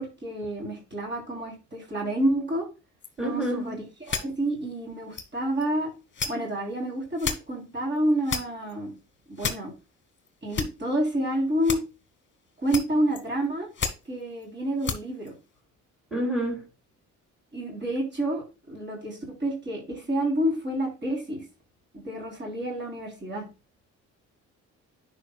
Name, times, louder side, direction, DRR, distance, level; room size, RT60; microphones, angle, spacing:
voice 1, 0.0-2.6 3.2-5.9 6.3-8.9 9.3-9.7 10.4-11.8 12.6-13.7 14.1-15.3 17.5-21.4 21.9-23.4, right 1 dB, 35° right, 3.4 m, -29 dB
sound 1, 3.0-3.1 3.7-3.8 4.0-4.5 5.1-5.2 5.6-5.7 6.1-6.3 7.2-7.4 7.9-8.7 9.3-9.5 10.2-10.7 11.6-11.8 12.6-12.8 13.1-13.4 13.7-14.4 14.8-15.0 15.3-15.4, left 6 dB, 40° left, 1.1 m, -31 dB
voice 2, 3.2-3.8 16.1-16.6, right 1 dB, ahead, 2.8 m, -28 dB
10.5 x 4.6 x 2.3 m
cardioid pair, 90°, 30 cm